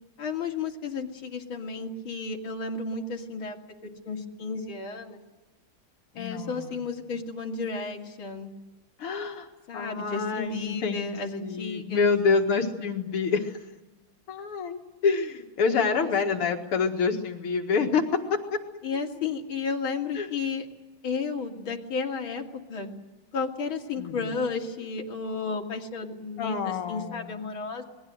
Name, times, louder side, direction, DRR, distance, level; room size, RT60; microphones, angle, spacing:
voice 1, 0.2-3.6 3.8-5.2 6.1-8.5 9.7-12.1 15.7-16.5 18.8-20.6 21.0-22.4 22.7-22.9 23.3-27.8, left 4 dB, 65° left, 1 dB, 3.4 m, -33 dB
voice 2, 6.1-6.8 9.0-9.5 9.7-13.6 14.3-18.6 20.1-20.3 24.0-24.3 26.4-27.3, left 5 dB, 85° left, 4 dB, 2.7 m, -27 dB
28.5 x 21.0 x 7.8 m, 1.1 s
omnidirectional pair, 2.4 m